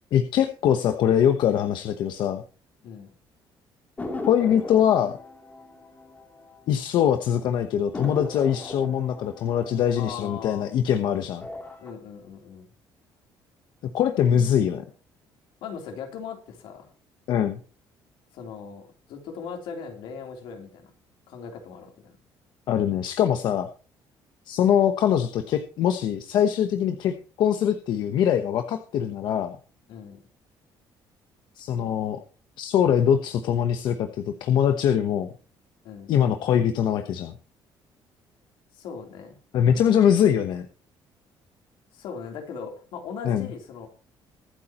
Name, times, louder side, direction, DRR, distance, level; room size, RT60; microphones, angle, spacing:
voice 1, 0.1-2.4 4.3-5.2 6.7-11.4 13.9-14.8 17.3-17.6 22.7-23.7 24.5-29.6 31.6-32.2 32.6-35.3 36.1-37.3 39.5-40.7 43.2-43.5, left 9 dB, 65° left, 7 dB, 1.0 m, -23 dB
voice 2, 2.8-3.1 10.0-10.7 11.8-12.7 15.6-16.9 18.3-20.9 21.3-22.1 29.9-30.2 35.8-36.1 38.7-39.4 39.7-39.9 41.9-43.9, left 6 dB, 80° left, 3 dB, 3.4 m, -39 dB
sound 1, 4.0-7.0 7.3-7.4 7.9-10.9 11.3-11.9, left 2 dB, 20° left, 3.0 m, -38 dB
23.5 x 8.5 x 3.0 m, 0.36 s
cardioid pair, 160°, 8 cm